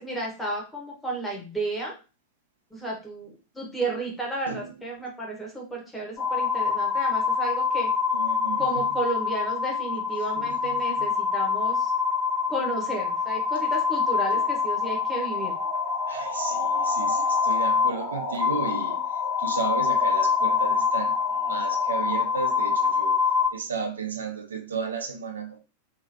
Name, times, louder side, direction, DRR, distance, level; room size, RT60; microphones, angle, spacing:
voice 1, 0.0-1.9 2.7-7.9 8.6-11.9 12.5-15.6, right 2 dB, 5° left, 1.1 m, -32 dB
sound 1, 6.2-23.5, left 5 dB, 35° left, 0.8 m, -25 dB
voice 2, 8.1-8.8 10.4-11.1 16.1-19.0 19.4-23.2 23.5-25.6, right 5 dB, 70° right, 0.5 m, -34 dB
3.0 x 2.3 x 2.7 m
figure-of-eight pair, 90°, 0 cm